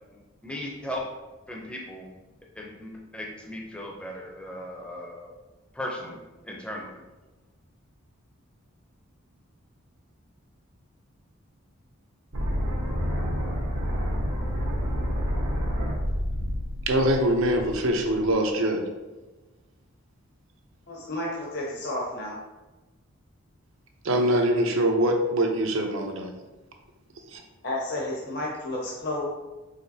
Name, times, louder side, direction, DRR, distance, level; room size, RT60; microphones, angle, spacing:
voice 1, 0.4-1.1 1.5-2.1 2.6-5.3 5.7-7.0, left 1 dB, 5° left, -2 dB, 0.5 m, -37 dB
sound 1, 12.3-18.3, equal, 90° right, 1.1 m, -29 dB
voice 2, 16.9-18.8 24.0-26.3 27.3-27.4, right 1 dB, 70° right, 3 dB, 0.7 m, -23 dB
voice 3, 20.9-22.4 27.6-29.2, left 1 dB, 50° left, -4 dB, 0.8 m, -31 dB
5.0 x 3.7 x 2.7 m, 1.1 s
head